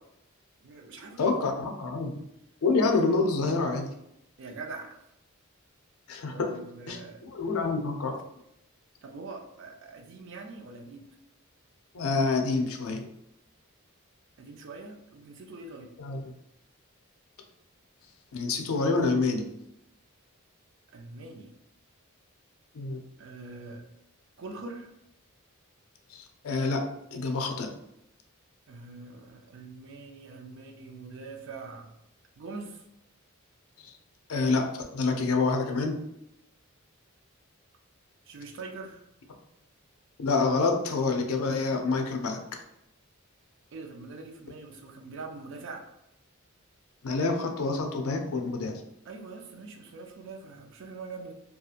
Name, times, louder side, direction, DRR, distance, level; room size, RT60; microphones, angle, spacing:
voice 1, 0.6-1.4 4.4-5.1 6.3-7.2 9.0-11.1 14.4-15.9 20.9-21.6 23.2-23.9 24.4-24.9 28.7-31.9 32.4-32.9 38.2-39.0 43.7-45.9 49.0-51.3, right 3 dB, 60° right, 3 dB, 0.4 m, -43 dB
voice 2, 1.2-2.2 2.6-3.9 6.1-6.5 6.9-7.0 7.2-8.2 11.9-13.0 16.0-16.2 18.3-19.4 22.7-23.0 26.1-26.8 27.1-27.7 33.8-33.9 34.3-34.7 34.9-36.0 40.2-42.4 47.0-48.7, left 3 dB, 80° left, 4 dB, 0.4 m, -27 dB
2.7 x 2.3 x 2.4 m, 0.82 s
head